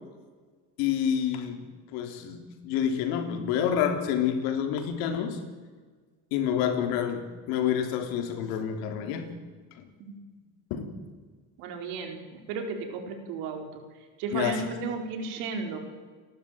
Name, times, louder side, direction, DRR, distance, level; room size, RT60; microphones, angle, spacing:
voice 1, 0.8-1.6 1.9-5.4 6.3-9.3 9.8-9.9 10.7-10.9 14.3-14.7, left 8 dB, 85° left, 6 dB, 3.7 m, -28 dB
voice 2, 11.6-12.2 12.5-13.7 14.2-15.8, right 4 dB, 90° right, 5 dB, 4.5 m, -33 dB
30.0 x 12.5 x 9.1 m, 1.5 s
cardioid pair, 120°, 35 cm